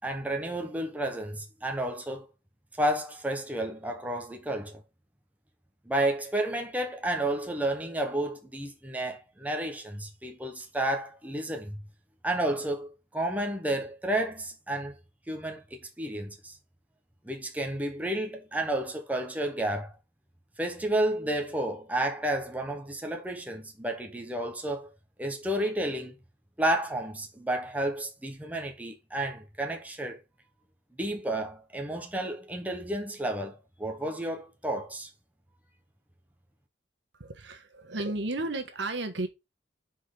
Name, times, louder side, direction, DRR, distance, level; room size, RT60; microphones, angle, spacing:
voice 1, 0.0-2.3 2.8-4.8 5.9-11.8 12.2-15.0 15.3-16.6 17.2-19.9 20.6-24.9 25.2-26.1 26.6-30.2 31.0-35.1, right 1 dB, 10° right, 0.9 m, -31 dB
voice 2, 37.2-39.3, right 2 dB, 70° right, 1.3 m, -33 dB
5.8 x 4.3 x 4.9 m
head